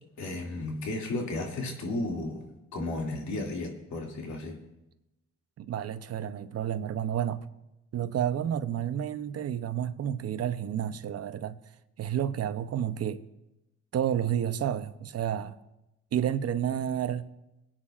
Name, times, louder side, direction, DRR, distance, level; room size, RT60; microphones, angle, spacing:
voice 1, 0.2-4.6, left 2 dB, 70° left, 0 dB, 2.5 m, -34 dB
voice 2, 5.6-7.4 7.9-11.6 12.0-13.2 13.9-15.6 16.1-17.3, right 10 dB, 55° right, 12 dB, 0.8 m, -30 dB
24.0 x 8.9 x 2.5 m, 0.94 s
cardioid pair, 90°, 30 cm